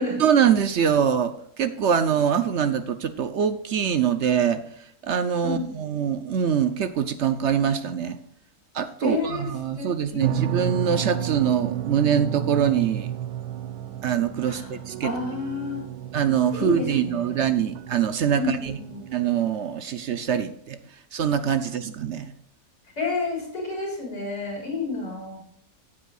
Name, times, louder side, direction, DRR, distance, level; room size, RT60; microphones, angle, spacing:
voice 1, 0.2-4.6 5.0-8.2 8.7-13.1 14.0-15.1 16.1-18.7 19.1-20.8 21.1-22.3, right 8 dB, 60° right, 11 dB, 0.8 m, -24 dB
voice 2, 5.4-5.8 9.0-9.5 9.8-10.3 14.5-15.8 16.5-17.5 18.3-19.0 23.0-25.4, left 3 dB, 80° left, -2 dB, 4.8 m, -30 dB
sound 1, 10.2-19.5, right 11 dB, 85° right, 1.2 m, -32 dB
15.0 x 8.1 x 2.4 m, 0.68 s
omnidirectional pair, 1.7 m